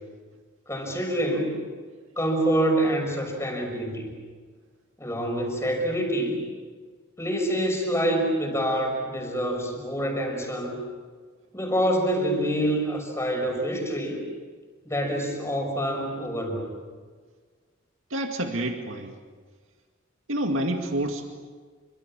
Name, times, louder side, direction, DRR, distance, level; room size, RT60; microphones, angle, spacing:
voice 1, 0.7-1.6 2.2-4.1 5.0-6.4 7.2-10.7 11.5-14.2 14.8-16.6, right 1 dB, 15° left, 2 dB, 6.3 m, -26 dB
voice 2, 18.1-19.1 20.3-21.3, right 1 dB, 70° right, 3 dB, 2.2 m, -28 dB
29.0 x 26.0 x 7.4 m, 1.6 s
head